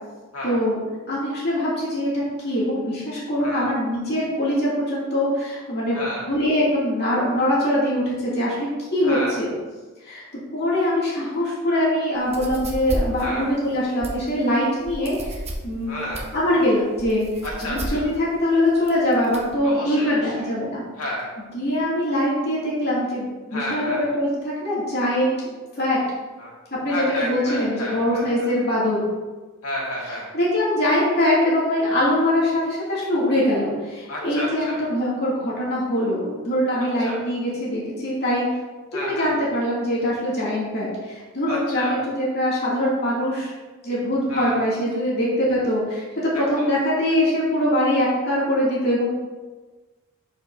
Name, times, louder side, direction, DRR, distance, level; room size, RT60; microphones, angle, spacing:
voice 1, 0.4-0.8 1.1-9.5 10.0-10.2 10.5-16.0 16.3-17.3 17.6-20.8 21.5-26.0 26.8-29.0 30.3-38.5 38.9-43.5 43.8-49.1, left 1 dB, 45° left, -7 dB, 2.6 m, -23 dB
voice 2, 3.4-3.7 5.9-6.3 9.0-9.4 13.2-13.5 15.8-16.2 17.4-18.1 19.6-20.5 21.0-21.3 23.5-24.1 26.4-26.5 26.9-28.5 29.6-30.3 34.1-34.8 37.0-37.2 38.9-39.4 41.5-42.1 44.3-44.6 46.3-46.7, left 1 dB, 80° left, -4 dB, 2.1 m, -31 dB
sound 1, 12.1-19.6, right 1 dB, 30° right, 0.9 m, -33 dB
11.5 x 5.4 x 2.7 m, 1.3 s
head